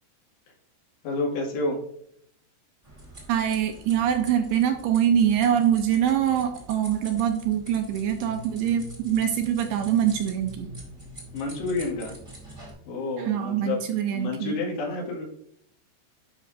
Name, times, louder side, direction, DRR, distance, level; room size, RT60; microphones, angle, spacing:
voice 1, 1.0-1.8 11.3-12.2 12.9-13.8 14.1-15.3, left 2 dB, 75° left, -2 dB, 3.8 m, -29 dB
sound 1, 2.8-12.7, right 1 dB, 20° right, 0.9 m, -44 dB
voice 2, 3.3-10.7 13.2-14.5, right 9 dB, 85° right, 5 dB, 2.5 m, -24 dB
12.0 x 5.5 x 2.5 m, 0.69 s
omnidirectional pair, 5.0 m